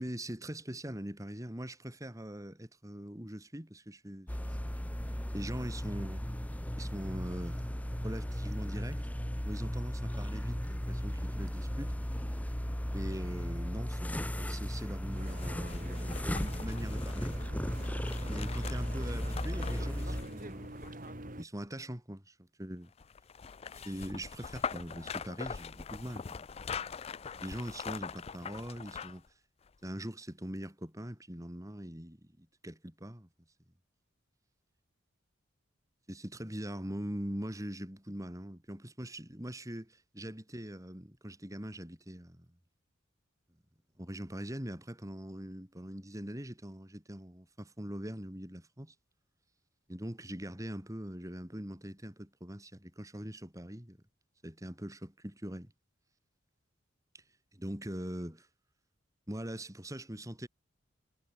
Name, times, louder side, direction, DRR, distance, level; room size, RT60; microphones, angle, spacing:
voice 1, 0.0-4.7 5.3-6.2 6.7-9.1 9.4-11.9 12.9-17.4 18.3-22.9 23.7-27.0 27.3-29.2 29.8-33.3 36.1-42.5 44.0-48.9 49.9-54.0 54.4-55.7 57.1-57.2 57.5-58.5 59.3-60.5, equal, 15° right, 3.2 m, -42 dB
sound 1, 4.3-20.2, equal, 5° left, 1.1 m, -36 dB
sound 2, 15.1-21.3 23.0-29.3 29.7-29.8, left 6 dB, 30° left, 0.4 m, -43 dB
sound 3, 15.1-21.4, right 1 dB, 40° right, 3.2 m, -46 dB
head